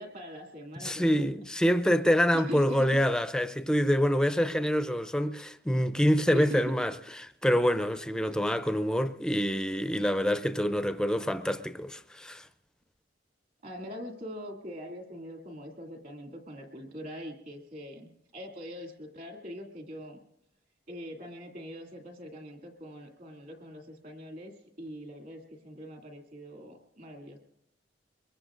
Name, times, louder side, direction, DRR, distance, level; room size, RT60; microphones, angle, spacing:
voice 1, 0.0-1.3 2.3-3.0 4.6-4.7 6.3-6.8 8.2-8.3 13.6-20.2 20.9-27.4, equal, 55° right, 2.5 m, -42 dB
voice 2, 0.8-6.9 7.2-12.5, equal, 5° left, 0.5 m, -26 dB
24.5 x 22.0 x 2.5 m
head